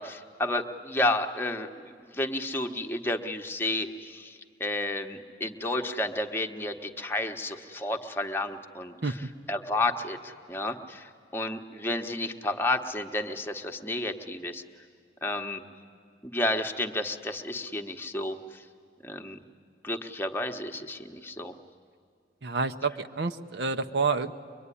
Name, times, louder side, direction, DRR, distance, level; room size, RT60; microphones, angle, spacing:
voice 1, 0.0-14.6 15.2-15.6 16.2-18.6 19.0-19.4 19.8-21.5, left 2 dB, 10° left, 4 dB, 1.0 m, -31 dB
voice 2, 22.4-24.3, right 4 dB, 65° right, 9 dB, 0.8 m, -28 dB
23.5 x 23.0 x 9.9 m, 2.2 s
head